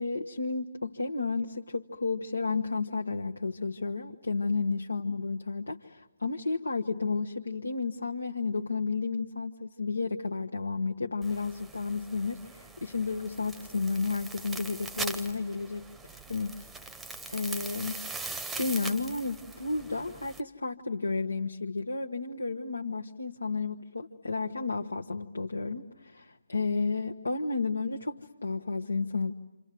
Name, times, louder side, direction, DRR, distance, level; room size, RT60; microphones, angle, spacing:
voice 1, 0.0-16.5 16.8-16.9 17.3-18.0 18.6-29.3, left 4 dB, 80° left, 2 dB, 1.1 m, -32 dB
sound 1, 11.2-20.4, right 3 dB, 5° right, 0.9 m, -41 dB
27.5 x 27.5 x 7.7 m, 1.0 s
figure-of-eight pair, 145°, 0 cm